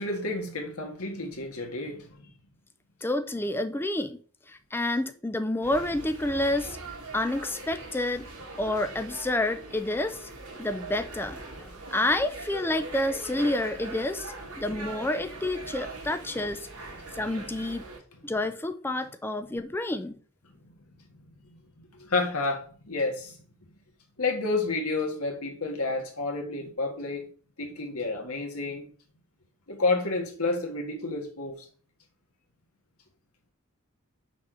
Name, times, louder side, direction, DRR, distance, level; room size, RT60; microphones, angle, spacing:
voice 1, 0.0-2.3 22.0-23.4 24.2-27.3 27.6-28.9 29.7-31.7, left 3 dB, 75° left, 1.8 m, -30 dB
voice 2, 3.0-4.2 4.5-6.8 7.1-8.3 8.6-10.3 10.6-16.7 17.1-17.8 18.2-20.2, left 1 dB, 10° left, 0.4 m, -29 dB
sound 1, 5.6-18.0, right 2 dB, 80° right, 2.5 m, -41 dB
6.1 x 4.3 x 6.2 m
head